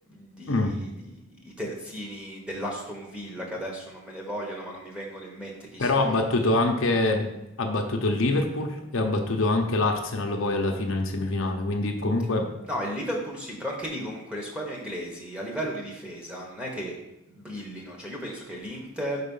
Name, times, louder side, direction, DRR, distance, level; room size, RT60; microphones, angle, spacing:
voice 1, 0.1-6.3 12.7-17.0 17.3-19.2, equal, 5° right, -2 dB, 1.1 m, -35 dB
voice 2, 5.8-7.3 7.6-12.5, left 2 dB, 65° left, 2 dB, 0.8 m, -25 dB
5.4 x 4.1 x 5.5 m, 0.91 s
head